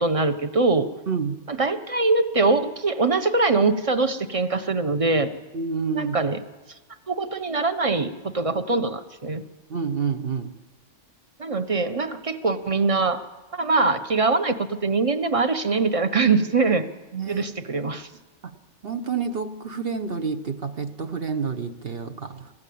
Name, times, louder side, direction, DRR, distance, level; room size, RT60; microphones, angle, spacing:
voice 1, 0.0-0.9 1.5-5.3 5.9-6.4 7.1-9.4 11.4-13.2 13.5-16.9 17.3-18.1, right 3 dB, 30° right, 9 dB, 1.0 m, -23 dB
voice 2, 1.1-1.4 5.5-6.2 9.7-10.5 17.1-17.4 17.8-17.9 18.4-18.6 18.8-22.5, right 5 dB, 50° right, 8 dB, 1.2 m, -29 dB
24.5 x 15.0 x 8.6 m, 1.2 s
omnidirectional pair, 1.3 m